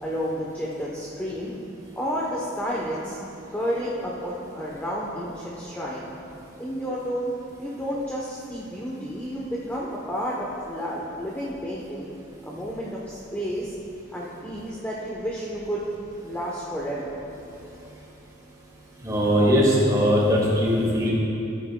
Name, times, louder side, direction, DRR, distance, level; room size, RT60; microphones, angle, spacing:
voice 1, 0.0-1.5 1.9-3.2 3.5-6.1 6.6-7.3 7.6-12.1 12.4-13.8 14.1-15.8 16.2-17.2, equal, 10° left, -5 dB, 0.8 m, -31 dB
voice 2, 19.0-21.1, equal, 20° right, -5 dB, 1.9 m, -20 dB
14.0 x 9.5 x 2.2 m, 2.8 s
head